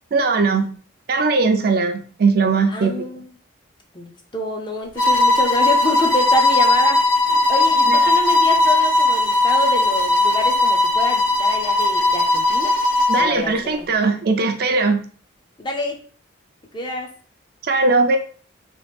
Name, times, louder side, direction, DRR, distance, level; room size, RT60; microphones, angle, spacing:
voice 1, 0.1-0.7 1.1-3.0 7.9-8.1 13.1-15.0 17.6-18.2, right 4 dB, 50° right, 6 dB, 0.4 m, -19 dB
voice 2, 2.7-3.3 3.9-7.0 7.3-12.7 13.2-13.9 15.6-16.0 16.7-17.1, left 1 dB, 25° left, 3 dB, 0.4 m, -27 dB
sound 1, 5.0-13.3, left 2 dB, 85° left, 1.0 m, -17 dB
3.0 x 2.4 x 3.2 m, 0.43 s
head